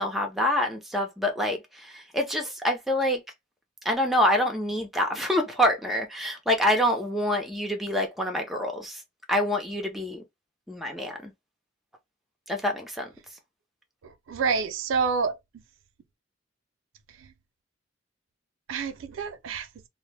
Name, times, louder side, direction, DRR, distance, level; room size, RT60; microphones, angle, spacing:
voice 1, 0.0-3.2 3.8-9.0 9.3-10.2 10.7-11.3 12.5-13.1, left 1 dB, ahead, 0.4 m, -26 dB
voice 2, 14.0-15.4 18.7-19.7, right 5 dB, 85° right, 0.4 m, -28 dB
2.0 x 2.0 x 3.1 m
head